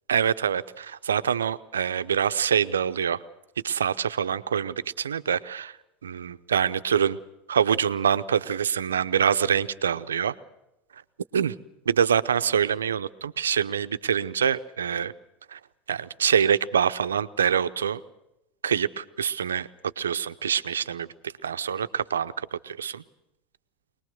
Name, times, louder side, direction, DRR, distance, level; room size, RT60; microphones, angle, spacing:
voice 1, 0.1-3.2 3.6-5.8 6.0-7.2 7.5-10.3 11.3-11.5 11.9-15.1 15.5-15.6 15.9-18.0 18.6-19.7 20.0-23.0, right 8 dB, 85° right, 12 dB, 0.7 m, -25 dB
24.5 x 20.0 x 6.5 m, 0.89 s
hypercardioid pair, 85°, 0 cm